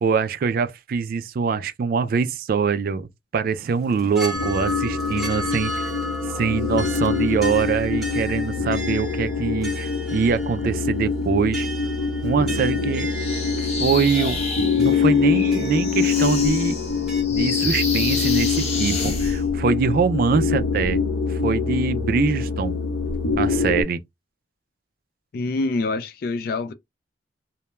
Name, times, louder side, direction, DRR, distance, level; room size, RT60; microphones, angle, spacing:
voice 1, 0.0-5.9 6.4-11.7 12.2-13.1 13.8-14.4 14.8-16.8 17.3-21.0 21.3-22.8 23.4-24.0, right 5 dB, 55° right, 0.3 m, -23 dB
sound 1, 3.7-17.2, right 1 dB, 5° right, 0.8 m, -35 dB
sound 2, 4.3-23.8, left 5 dB, 70° left, 0.8 m, -24 dB
sound 3, 13.1-19.4, left 4 dB, 35° left, 1.0 m, -30 dB
voice 2, 25.3-26.7, left 3 dB, 55° left, 0.3 m, -26 dB
2.2 x 2.1 x 2.9 m
head